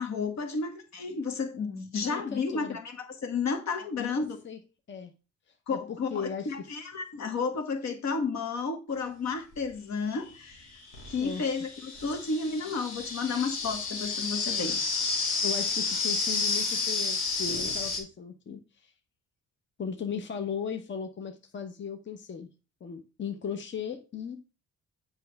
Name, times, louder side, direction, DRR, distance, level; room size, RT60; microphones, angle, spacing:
voice 1, 0.0-4.4 5.7-10.7 11.1-14.8, left 4 dB, 65° left, 1.7 m, -32 dB
voice 2, 2.0-2.8 4.0-4.6 4.9-5.1 5.5-6.5 11.2-11.4 13.2-13.5 14.6-14.8 15.4-18.9 19.8-22.5 22.8-24.4, left 6 dB, 40° left, 0.9 m, -37 dB
sound 1, 9.5-9.6 10.5-18.0, left 4 dB, 90° left, 2.3 m, -31 dB
7.6 x 5.7 x 3.4 m
cardioid pair, 90°, 30 cm